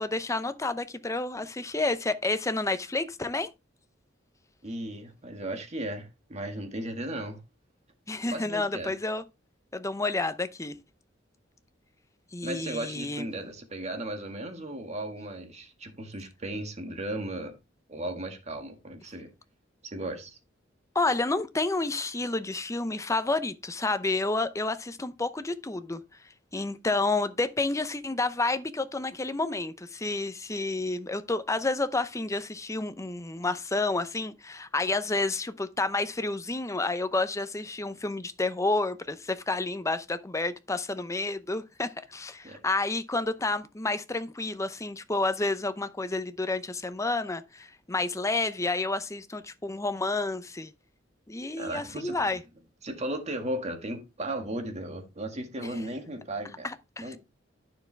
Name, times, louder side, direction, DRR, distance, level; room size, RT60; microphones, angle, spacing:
voice 1, 0.0-3.5 8.1-9.2 9.7-10.8 12.3-13.2 20.9-26.0 26.5-50.7 51.3-52.4 55.6-55.7 56.6-57.2, left 2 dB, 15° left, 0.7 m, -30 dB
voice 2, 4.6-7.4 8.3-8.9 12.4-17.5 17.9-19.3 19.8-20.4 42.4-42.6 51.6-52.3 52.8-56.7 57.0-57.2, right 1 dB, 35° right, 1.9 m, -36 dB
9.6 x 6.9 x 3.4 m
head